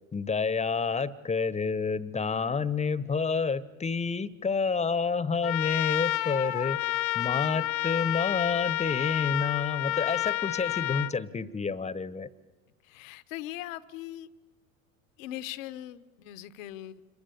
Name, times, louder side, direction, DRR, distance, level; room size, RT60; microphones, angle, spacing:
voice 1, 0.1-6.8 7.1-12.3, left 5 dB, 15° left, 18 dB, 1.0 m, -29 dB
Trumpet, 5.4-11.1, left 16 dB, 45° left, 0.8 m, -30 dB
voice 2, 12.8-14.3 15.2-17.0, left 14 dB, 65° left, 15 dB, 1.2 m, -40 dB
26.5 x 22.5 x 8.5 m, 1.2 s
hypercardioid pair, 80°, 43 cm